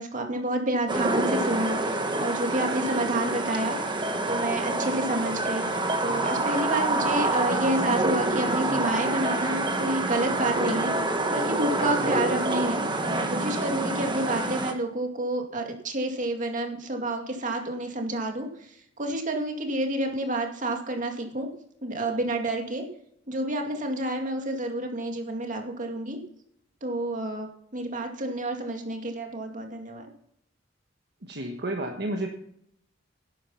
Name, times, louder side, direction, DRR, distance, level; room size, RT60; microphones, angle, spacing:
voice 1, 0.0-3.8 4.2-10.9 11.3-21.5 21.8-22.8 23.3-26.2 26.8-30.1, right 1 dB, 40° right, 3 dB, 2.3 m, -29 dB
sound 1, 0.9-14.7, right 2 dB, 25° right, 1.3 m, -27 dB
voice 2, 31.3-32.3, right 1 dB, 60° right, 2 dB, 1.5 m, -31 dB
11.5 x 9.6 x 5.7 m, 0.70 s
head